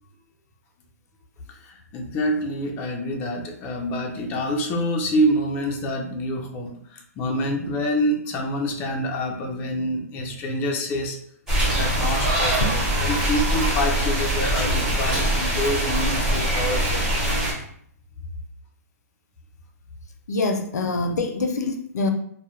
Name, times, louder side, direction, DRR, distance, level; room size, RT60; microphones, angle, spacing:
voice 1, 1.5-11.2 11.7-17.0, equal, 20° left, 2 dB, 0.3 m, -26 dB
sound 1, 11.5-17.5, right 1 dB, 5° right, 0.9 m, -23 dB
voice 2, 20.3-22.1, left 2 dB, 85° left, 5 dB, 0.5 m, -25 dB
2.1 x 2.0 x 3.0 m, 0.64 s
hypercardioid pair, 145°, 9 cm